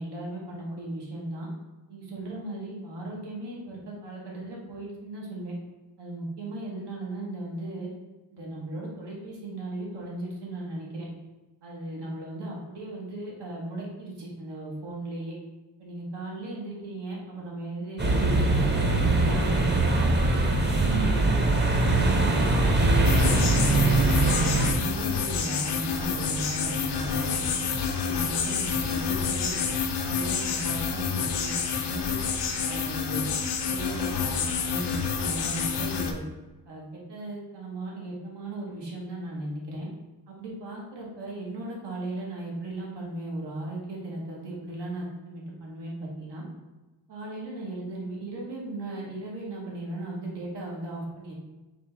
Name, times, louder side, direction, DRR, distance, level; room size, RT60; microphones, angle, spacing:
voice 1, 0.0-1.5 1.9-5.5 6.0-7.9 8.3-11.1 11.6-15.3 15.8-20.4 20.9-27.5 28.0-29.6 30.0-32.2 32.6-33.4 33.7-36.2 36.7-39.9 40.3-46.4 47.1-51.3, right 1 dB, 80° right, -3 dB, 1.3 m, -36 dB
sound 1, 18.0-24.7, right 2 dB, 25° right, 0.7 m, -22 dB
sound 2, 23.0-36.1, left 6 dB, 75° left, 0.6 m, -28 dB
4.1 x 2.9 x 3.3 m, 1.1 s
cardioid pair, 75°, 41 cm